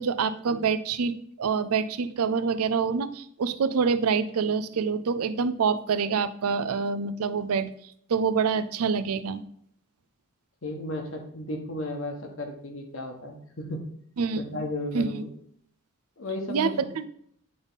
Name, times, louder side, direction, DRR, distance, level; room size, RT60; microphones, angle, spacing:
voice 1, 0.0-7.7 8.1-9.4 14.2-14.4 14.9-15.2 16.5-17.1, right 5 dB, 85° right, 12 dB, 0.5 m, -26 dB
voice 2, 10.6-13.8 14.4-15.3 16.2-16.9, left 1 dB, 60° left, 4 dB, 1.2 m, -34 dB
8.7 x 3.5 x 4.0 m, 0.65 s
head